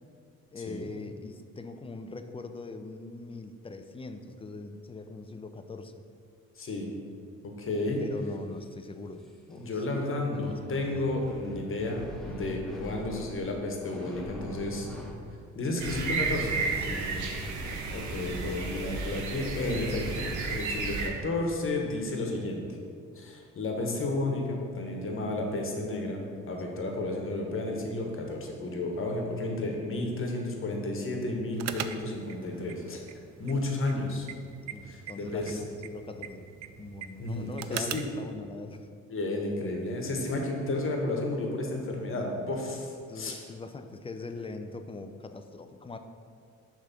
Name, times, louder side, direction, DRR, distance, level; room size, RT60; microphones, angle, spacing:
voice 1, 0.5-5.9 8.0-10.9 12.3-13.0 16.8-17.3 18.3-19.0 26.7-26.8 34.7-36.5 36.8-38.9 43.1-46.0, left 3 dB, 20° left, 8 dB, 0.4 m, -42 dB
voice 2, 6.6-6.9 7.4-8.0 9.5-14.9 15.5-16.6 17.0-17.1 17.9-22.7 23.1-33.0 33.4-34.3 34.9-35.6 37.2-38.0 39.1-43.3, left 2 dB, 45° left, 1 dB, 1.3 m, -32 dB
sound 1, 7.9-8.0 9.2-9.6 10.4-15.1, left 1 dB, ahead, 1.0 m, -43 dB
sound 2, 15.8-21.1, right 4 dB, 80° right, 1.0 m, -32 dB
sound 3, 31.6-38.2, right 9 dB, 60° right, 0.4 m, -42 dB
6.5 x 3.5 x 5.9 m, 2.3 s
cardioid pair, 90°, 30 cm